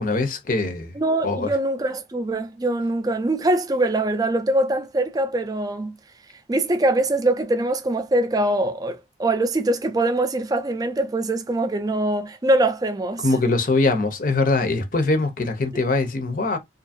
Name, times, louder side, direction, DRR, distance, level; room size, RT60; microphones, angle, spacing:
voice 1, 0.0-1.0 1.2-1.5 13.2-16.6, left 3 dB, 45° left, 0.6 m, -22 dB
voice 2, 1.0-5.9 6.5-13.3 15.7-15.8, right 1 dB, 20° right, 0.3 m, -23 dB
2.6 x 2.5 x 2.5 m
head